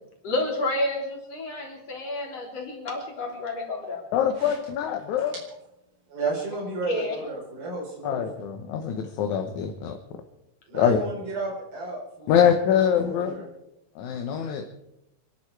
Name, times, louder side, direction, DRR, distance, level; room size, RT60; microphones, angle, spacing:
voice 1, 0.2-4.0 6.9-7.2, left 2 dB, 45° left, 0 dB, 4.3 m, -30 dB
voice 2, 4.1-5.3 8.0-10.0 10.7-11.0 12.3-13.3 14.0-14.6, left 8 dB, 65° left, 5 dB, 2.2 m, -24 dB
voice 3, 6.1-8.2 10.7-12.4 12.8-13.5, right 3 dB, 90° right, -3 dB, 6.5 m, -33 dB
26.0 x 12.0 x 4.7 m, 0.86 s
omnidirectional pair, 4.1 m